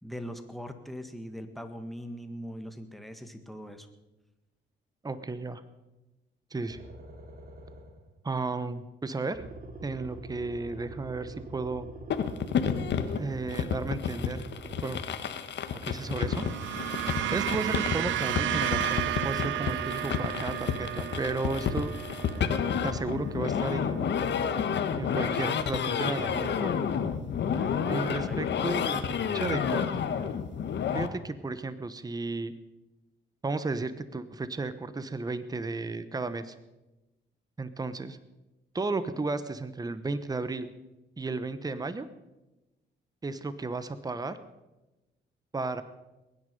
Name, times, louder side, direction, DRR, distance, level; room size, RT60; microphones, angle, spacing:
voice 1, 0.0-3.9 17.9-18.0 27.5-28.4, equal, ahead, 7 dB, 1.7 m, -41 dB
voice 2, 5.0-5.6 6.5-6.8 8.2-9.4 9.8-11.9 13.2-14.4 14.8-15.0 15.8-16.5 17.3-21.9 22.8-24.1 25.0-26.8 27.9-29.0 29.3-29.8 30.9-32.5 33.4-36.5 37.6-38.2 38.7-40.7 41.2-42.1 43.2-44.4 45.5-45.8, right 3 dB, 20° right, 13 dB, 1.0 m, -33 dB
sound 1, 6.7-8.1 9.3-15.2 17.0-19.4, right 3 dB, 50° right, 2.3 m, -44 dB
sound 2, 12.1-31.1, left 7 dB, 60° left, 1.3 m, -30 dB
sound 3, 16.0-24.5, right 12 dB, 70° right, 0.6 m, -33 dB
21.5 x 9.9 x 5.4 m, 1.0 s
cardioid pair, 90°, 20 cm